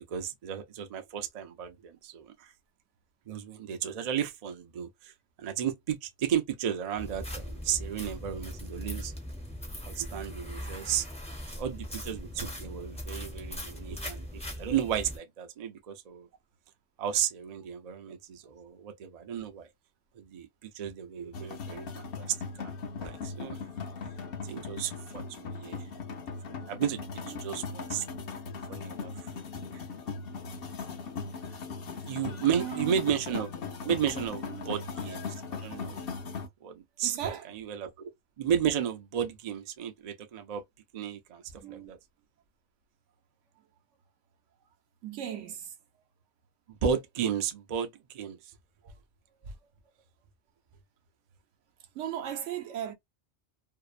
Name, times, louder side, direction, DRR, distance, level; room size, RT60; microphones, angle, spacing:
voice 1, 0.0-2.5 3.3-9.1 9.9-11.1 11.6-16.3 17.0-19.7 20.1-23.6 24.4-25.9 26.5-28.0 28.7-29.3 29.7-29.8 32.1-33.5 33.8-36.0 36.6-38.1 38.4-40.6 40.9-42.0 46.7-48.5, right 8 dB, 55° right, 0.4 m, -33 dB
sound 1, 7.0-15.2, equal, 10° left, 0.5 m, -40 dB
sound 2, 21.3-36.5, left 5 dB, 60° left, 0.8 m, -39 dB
voice 2, 27.2-27.6 32.5-33.0 34.5-34.8 36.3-36.4 37.0-37.5 41.6-41.9 45.0-45.7 48.8-48.9 51.9-52.9, right 10 dB, 80° right, 1.0 m, -37 dB
2.7 x 2.0 x 2.4 m
omnidirectional pair, 1.2 m